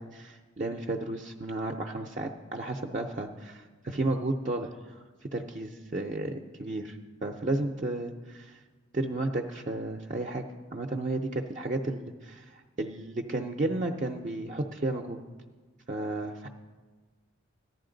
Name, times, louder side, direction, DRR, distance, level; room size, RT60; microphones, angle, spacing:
voice 1, 0.0-6.3 6.6-8.6 8.9-10.5 10.7-15.2 15.9-16.5, right 2 dB, 40° right, 4 dB, 0.5 m, -33 dB
14.5 x 10.5 x 3.8 m, 1.3 s
head